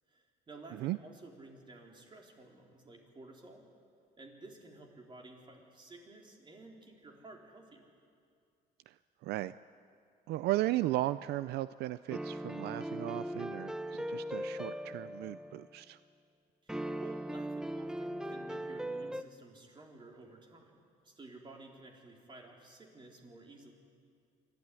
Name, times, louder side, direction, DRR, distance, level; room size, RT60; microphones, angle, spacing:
voice 1, 0.1-3.6 4.2-7.8 16.6-23.7, right 2 dB, 30° right, 0 dB, 3.8 m, -53 dB
voice 2, 9.2-9.5 10.3-16.0, right 16 dB, 75° right, 15 dB, 0.4 m, -35 dB
sound 1, 12.1-15.8 16.7-19.2, right 1 dB, 5° right, 0.7 m, -39 dB
25.0 x 13.5 x 9.6 m, 2.3 s
cardioid pair, 110°, 17 cm